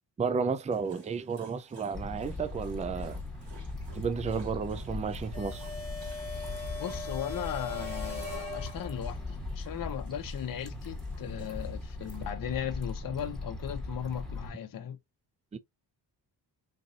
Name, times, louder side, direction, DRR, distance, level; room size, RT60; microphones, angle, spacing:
voice 1, 0.2-3.2 3.9-5.7 15.5-15.6, right 5 dB, 15° right, 0.4 m, -32 dB
Dog, 0.7-12.3, right 3 dB, 70° right, 2.7 m, -57 dB
sound 1, 1.9-14.5, left 2 dB, ahead, 1.4 m, -39 dB
sound 2, 5.3-9.2, left 3 dB, 50° right, 2.6 m, -41 dB
voice 2, 6.8-15.0, left 9 dB, 50° left, 0.7 m, -37 dB
4.2 x 2.6 x 2.4 m
cardioid pair, 75°, 43 cm